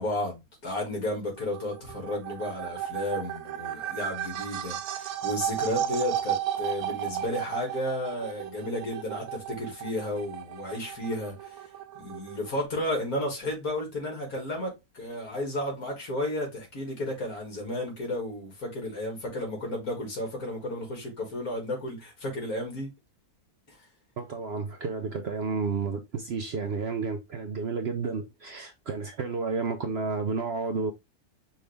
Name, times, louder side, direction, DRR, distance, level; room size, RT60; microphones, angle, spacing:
voice 1, 0.0-11.7 11.9-22.9 23.7-23.8, left 1 dB, 70° left, 2.5 m, -33 dB
sound 1, 1.4-12.7, right 11 dB, 75° right, 1.0 m, -34 dB
voice 2, 24.2-30.9, right 4 dB, 60° right, 0.7 m, -31 dB
5.5 x 2.7 x 3.3 m
omnidirectional pair, 1.6 m